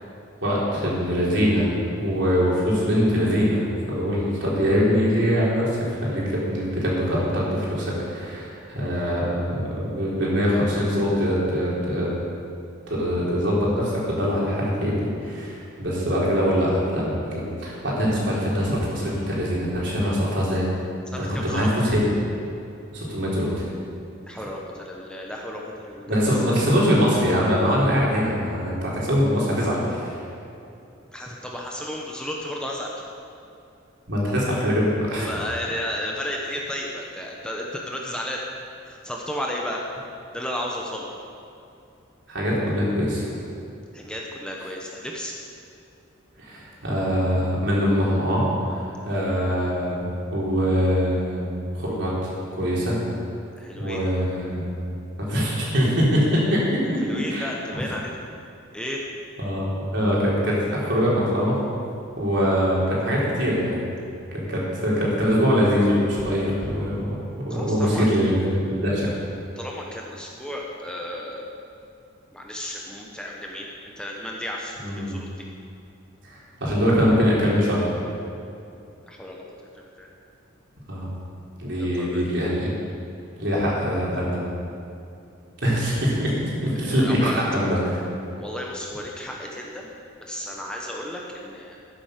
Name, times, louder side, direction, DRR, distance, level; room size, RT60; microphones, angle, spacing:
voice 1, 0.4-12.1 12.9-20.7 21.1-22.1 22.9-23.6 26.1-30.2 34.1-35.4 42.3-43.2 46.4-51.4 51.7-52.1 52.5-53.0 53.8-54.7 55.2-57.0 57.3-57.6 59.4-61.6 62.2-63.8 64.3-67.1 67.4-69.1 74.8-75.2 76.2-77.9 80.9-81.1 81.6-82.7 83.4-84.5 85.6-88.0, equal, 60° right, -5 dB, 4.1 m, -23 dB
voice 2, 21.1-21.7 24.3-26.2 31.1-32.9 35.2-38.4 38.8-39.8 40.3-41.2 43.9-45.3 53.6-54.0 57.0-58.1 58.7-59.0 67.5-68.1 69.6-71.5 72.3-75.3 79.1-79.4 80.0-80.1 81.7-82.2 86.7-87.4 88.4-89.9 90.2-91.8, left 1 dB, 5° left, -2 dB, 1.1 m, -33 dB
12.5 x 10.0 x 6.7 m, 2.6 s
head